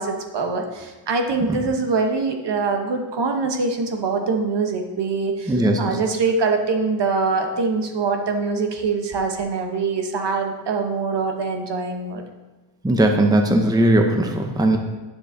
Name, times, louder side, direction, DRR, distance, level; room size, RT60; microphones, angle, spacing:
voice 1, 0.0-12.2, right 4 dB, 65° right, 4 dB, 1.0 m, -24 dB
voice 2, 5.5-5.8 12.8-14.8, right 1 dB, 10° right, 4 dB, 0.6 m, -18 dB
9.7 x 6.9 x 2.6 m, 1.2 s
wide cardioid pair, 130°, 45 cm